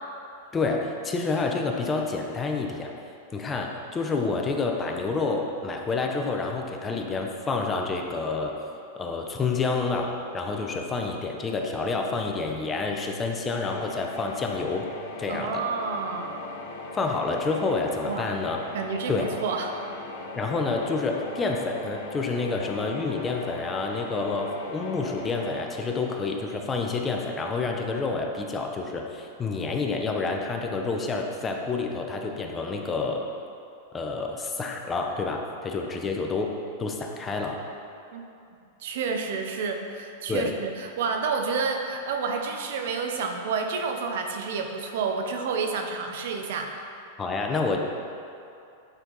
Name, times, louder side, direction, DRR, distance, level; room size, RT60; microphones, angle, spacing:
voice 1, 0.5-2.9 3.3-8.5 8.9-14.9 15.2-15.6 16.9-18.6 19.1-19.3 20.3-33.2 33.9-36.5 36.8-37.6 40.3-40.5 47.2-47.8, left 3 dB, 20° left, 2 dB, 0.7 m, -28 dB
sound 1, 13.5-27.4, left 2 dB, 65° left, 0.9 m, -39 dB
voice 2, 15.3-16.4 18.0-18.3 18.7-19.7 38.1-38.2 38.8-46.7, right 5 dB, 70° right, 4 dB, 0.8 m, -29 dB
8.9 x 4.4 x 4.0 m, 2.6 s
hypercardioid pair, 130°, 0 cm